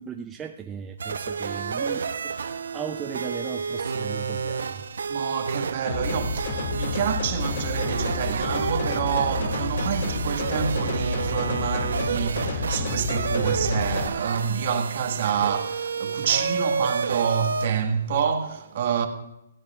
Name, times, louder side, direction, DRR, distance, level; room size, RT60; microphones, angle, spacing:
voice 1, 0.0-4.9, right 7 dB, 10° right, 0.5 m, -37 dB
sound 1, 1.0-17.7, right 5 dB, 80° right, 0.8 m, -30 dB
voice 2, 5.1-19.1, right 7 dB, 45° right, 1.6 m, -28 dB
sound 2, 5.9-14.1, left 3 dB, 45° left, 2.2 m, -30 dB
18.5 x 16.0 x 2.4 m
hypercardioid pair, 160°, 0 cm